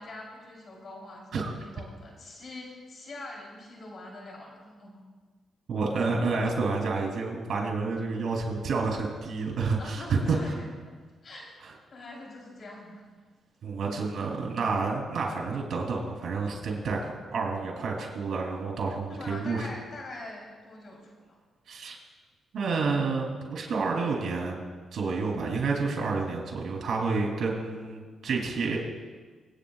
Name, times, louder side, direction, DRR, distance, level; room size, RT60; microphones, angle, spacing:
voice 1, 0.0-5.0 9.5-10.7 11.2-11.6 11.9-13.0 19.1-21.4, left 2 dB, 55° left, -2 dB, 4.0 m, -43 dB
voice 2, 5.7-10.5 11.6-11.7 13.6-19.7 21.7-22.0 22.5-24.6 24.9-28.8, right 4 dB, 65° right, 0 dB, 3.4 m, -29 dB
25.5 x 9.1 x 2.5 m, 1.4 s
cardioid pair, 70°, 0 cm